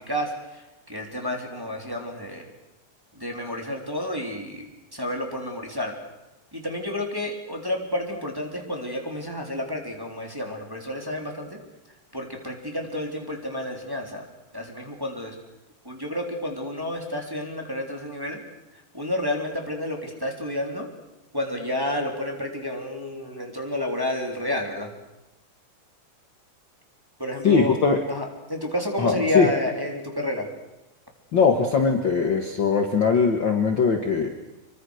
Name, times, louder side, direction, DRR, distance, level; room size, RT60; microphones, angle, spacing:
voice 1, 0.0-2.5 3.1-5.9 6.5-11.6 12.1-14.2 14.5-15.3 15.8-18.4 18.9-20.9 21.3-24.9 27.2-27.7 28.1-30.5, left 1 dB, 5° right, 1 dB, 3.2 m, -30 dB
voice 2, 27.4-28.0 29.0-29.5 31.3-34.3, left 5 dB, 45° left, 4 dB, 2.0 m, -20 dB
26.5 x 23.5 x 6.5 m, 0.98 s
omnidirectional pair, 3.5 m